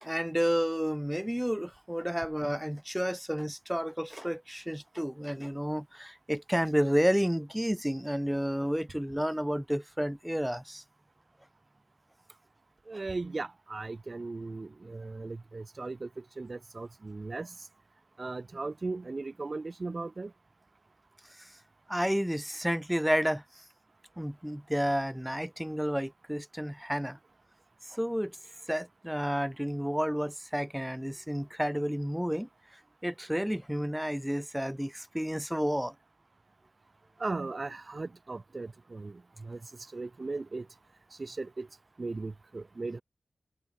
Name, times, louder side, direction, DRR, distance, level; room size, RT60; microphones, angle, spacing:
voice 1, 0.0-10.8 21.4-21.5 21.9-23.4 24.2-27.2 27.9-28.4 28.7-32.5 33.0-35.9, equal, 5° right, 1.1 m, -31 dB
voice 2, 12.9-17.5 18.2-20.3 37.2-39.6 39.9-40.7 41.2-41.7 42.0-43.0, right 3 dB, 40° right, 5.0 m, -37 dB
wide cardioid pair, 105°, 0 cm